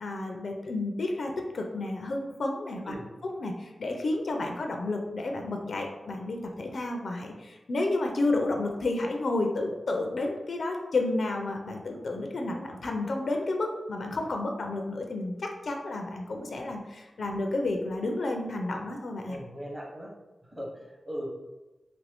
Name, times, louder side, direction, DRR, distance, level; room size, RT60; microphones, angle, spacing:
voice 1, 0.0-2.9 3.4-19.4, left 2 dB, 65° left, 3 dB, 0.4 m, -31 dB
voice 2, 19.2-20.1 20.4-21.3, equal, 15° right, -3 dB, 0.8 m, -39 dB
2.9 x 2.5 x 3.3 m, 1.1 s
wide cardioid pair, 135°, 0 cm